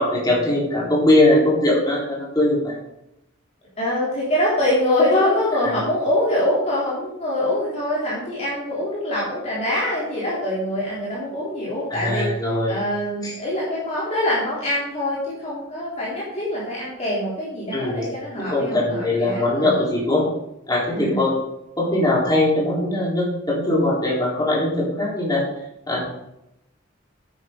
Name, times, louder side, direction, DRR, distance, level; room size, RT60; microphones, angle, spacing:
voice 1, 0.0-2.8 11.9-12.8 13.2-13.3 17.7-18.1 18.5-20.3 20.7-21.3 21.8-25.4 25.9-26.0, left 1 dB, 20° left, -5 dB, 3.9 m, -20 dB
voice 2, 3.8-12.3 12.7-19.9 20.9-21.2, left 1 dB, 35° left, -7 dB, 3.2 m, -24 dB
10.0 x 9.4 x 3.9 m, 0.84 s
head